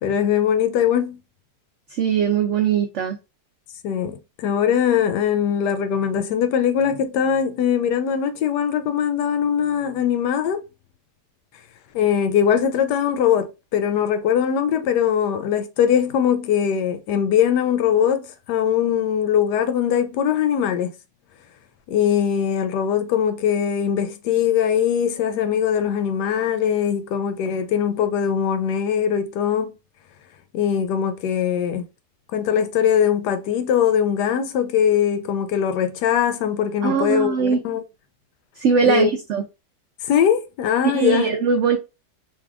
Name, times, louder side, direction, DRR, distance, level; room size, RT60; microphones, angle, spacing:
voice 1, 0.0-1.2 3.8-10.6 11.9-20.9 21.9-29.7 30.5-31.8 32.3-37.8 38.8-39.1 40.0-41.3, left 8 dB, 85° left, 1.2 m, -21 dB
voice 2, 1.9-3.2 36.8-37.6 38.6-39.4 40.9-41.8, right 6 dB, 85° right, 0.6 m, -20 dB
3.5 x 3.0 x 2.3 m
omnidirectional pair, 1.8 m